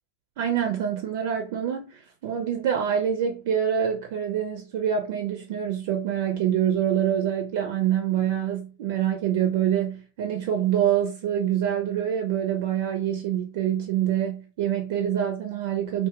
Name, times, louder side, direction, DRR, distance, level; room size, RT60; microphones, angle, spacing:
voice 1, 0.4-16.1, right 9 dB, 50° right, 0.4 m, -26 dB
2.6 x 2.0 x 2.3 m
figure-of-eight pair, 90°, 0 cm